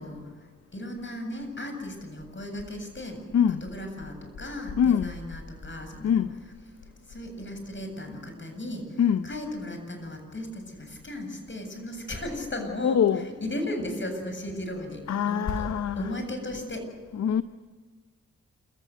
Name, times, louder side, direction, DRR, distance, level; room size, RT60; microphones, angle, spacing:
voice 1, 0.0-3.2 3.6-6.2 7.1-13.0 13.4-15.7 16.0-16.9, left 1 dB, 40° left, 7.9 m, -36 dB
sound 1, 0.6-16.6, left 3 dB, 80° left, 6.0 m, -45 dB
voice 2, 3.3-3.6 4.8-5.1 6.0-6.4 9.0-9.3 12.8-13.3 15.1-16.1 17.1-17.4, left 8 dB, 60° left, 0.8 m, -24 dB
28.0 x 15.5 x 9.4 m
supercardioid pair, 45°, 30 cm